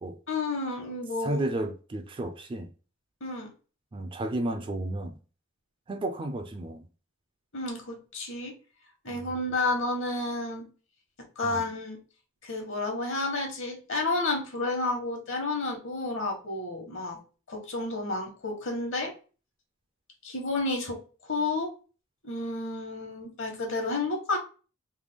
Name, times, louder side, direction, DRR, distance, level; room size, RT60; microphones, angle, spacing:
voice 1, 0.3-1.4 3.2-3.5 7.5-8.5 9.0-10.6 11.4-12.0 12.4-17.2 17.5-19.1 20.2-21.0 21.2-21.7 22.2-24.4, left 2 dB, 60° left, 1.2 m, -31 dB
voice 2, 1.2-2.7 3.9-5.1 5.9-6.9 9.1-9.2 11.4-11.6, right 1 dB, 25° right, 0.3 m, -32 dB
3.3 x 2.2 x 3.4 m
head